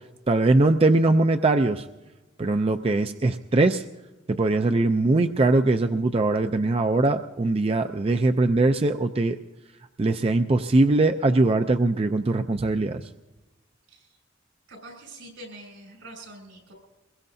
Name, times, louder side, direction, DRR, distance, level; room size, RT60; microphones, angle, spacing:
voice 1, 0.3-1.8 2.4-3.8 4.3-9.4 10.0-13.1, right 2 dB, 30° right, 7 dB, 0.4 m, -21 dB
voice 2, 14.7-16.7, right 1 dB, 85° right, 0 dB, 7.0 m, -44 dB
23.0 x 21.5 x 2.7 m, 1.1 s
head